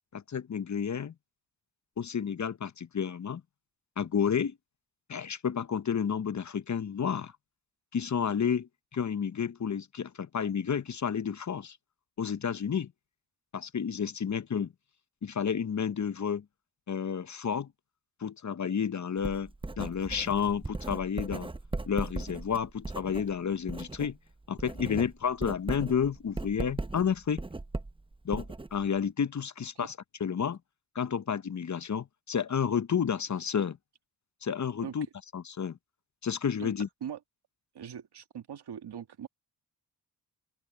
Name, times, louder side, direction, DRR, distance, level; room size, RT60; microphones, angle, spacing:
voice 1, 0.1-1.1 2.0-3.4 4.0-4.6 5.1-7.3 7.9-11.8 12.2-12.9 13.5-14.7 15.2-16.4 16.9-17.7 18.2-19.5 19.8-21.5 21.9-24.2 24.5-27.4 28.2-30.6 30.9-33.8 34.4-35.1 35.3-35.8 36.2-36.9, left 7 dB, 40° left, 0.8 m, -31 dB
Writing, 19.2-24.1 24.4-29.1, right 2 dB, 10° right, 0.7 m, -38 dB
voice 2, 37.7-39.3, right 8 dB, 65° right, 1.8 m, -41 dB
open air
cardioid pair, 50°, 42 cm